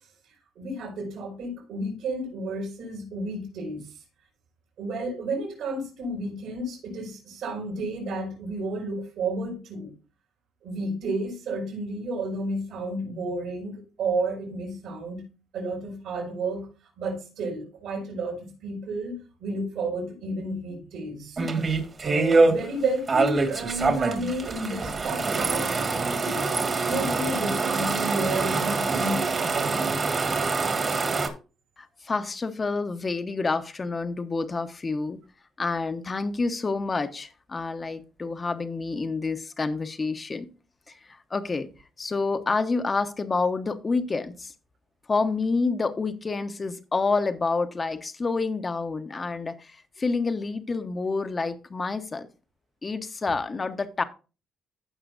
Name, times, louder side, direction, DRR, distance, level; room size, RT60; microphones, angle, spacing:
voice 1, 0.6-3.9 4.8-9.9 10.6-15.2 15.5-16.7 17.0-21.4 22.0-25.7 26.2-29.7, right 2 dB, 80° right, 5.3 m, -31 dB
sound 1, 21.4-22.5 23.1-31.3, right 3 dB, 40° right, 1.8 m, -25 dB
voice 2, 31.8-35.2 35.6-40.5 41.3-41.7 42.0-44.5 45.1-52.3 52.8-54.0, left 4 dB, 30° left, 1.0 m, -28 dB
15.5 x 6.0 x 2.6 m
cardioid pair, 90°, 0 cm